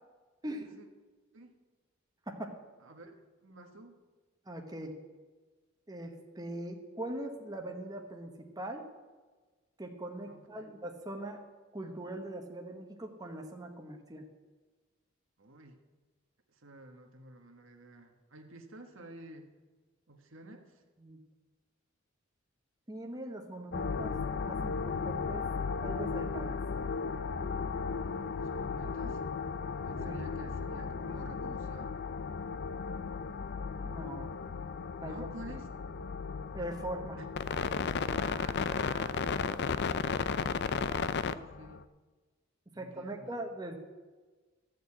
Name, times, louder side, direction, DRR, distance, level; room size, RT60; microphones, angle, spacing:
voice 1, 0.4-0.9 1.3-1.5 2.8-3.2 3.4-3.9 10.3-10.7 15.4-15.8 16.5-19.5 20.1-20.8 28.3-29.3 29.8-31.9 35.0-35.7 37.2-37.3 38.2-40.9 41.2-41.8 42.7-43.4, right 2 dB, 75° right, 4 dB, 1.4 m, -50 dB
voice 2, 4.5-4.9 5.9-8.3 8.6-8.9 9.8-11.4 11.7-14.2 21.0-21.2 22.9-25.5 25.8-26.6 30.0-30.2 33.8-34.3 35.0-35.3 36.5-37.2 42.8-43.8, right 1 dB, 20° right, 2 dB, 1.2 m, -41 dB
sound 1, 23.7-41.8, left 5 dB, 55° left, 0.5 m, -35 dB
13.5 x 6.5 x 8.7 m, 1.3 s
head